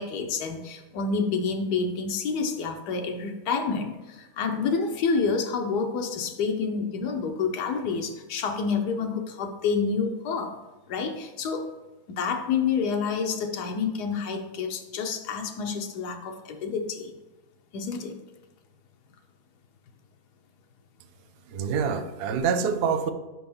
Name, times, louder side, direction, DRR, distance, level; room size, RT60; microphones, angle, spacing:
voice 1, 0.0-10.6 10.9-11.6 12.1-17.1 17.7-18.1, left 5 dB, 90° left, 4 dB, 1.3 m, -28 dB
voice 2, 21.5-23.1, right 6 dB, 75° right, 8 dB, 0.5 m, -26 dB
5.2 x 4.5 x 5.3 m, 1.1 s
omnidirectional pair, 1.7 m